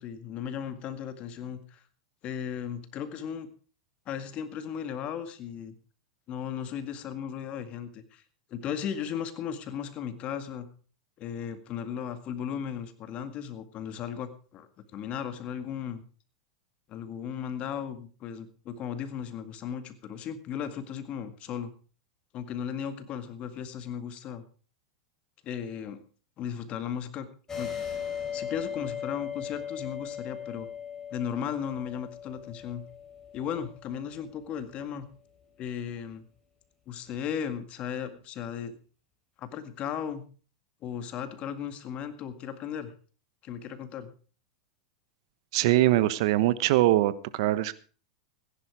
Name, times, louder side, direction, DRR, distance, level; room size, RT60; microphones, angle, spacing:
voice 1, 0.0-1.8 2.2-3.5 4.1-5.7 6.3-8.2 8.5-10.7 11.2-16.0 16.9-21.7 22.3-24.5 25.4-26.0 26.4-27.3 27.5-27.7 28.3-30.7 31.1-32.8 33.3-35.1 35.6-36.2 36.9-38.7 39.4-40.3 40.8-42.9 43.4-44.1, left 8 dB, 40° left, 11 dB, 1.9 m, -36 dB
sound 1, 27.5-34.6, left 8 dB, 20° left, 4.3 m, -38 dB
voice 2, 45.5-47.7, right 15 dB, 65° right, 16 dB, 1.1 m, -23 dB
15.5 x 10.5 x 4.8 m, 0.39 s
hypercardioid pair, 110°, 3 cm